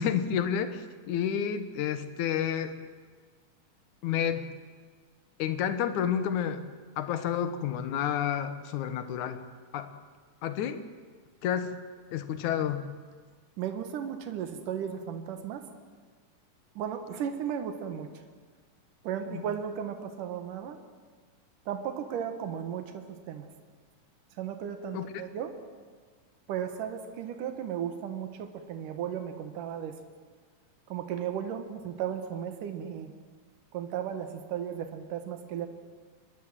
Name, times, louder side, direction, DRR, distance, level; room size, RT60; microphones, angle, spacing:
voice 1, 0.0-2.8 4.0-4.5 5.4-6.6 7.0-9.4 9.7-9.9 10.4-10.8 11.4-11.7 12.1-12.9 19.3-19.4 24.9-25.1, left 9 dB, 70° left, 10 dB, 2.6 m, -30 dB
voice 2, 13.6-15.7 16.8-18.1 19.0-20.8 21.7-23.5 24.4-25.5 26.5-30.0 30.9-33.1 33.7-35.7, right 8 dB, 80° right, 7 dB, 3.0 m, -35 dB
27.0 x 21.0 x 7.6 m, 1.5 s
omnidirectional pair, 3.6 m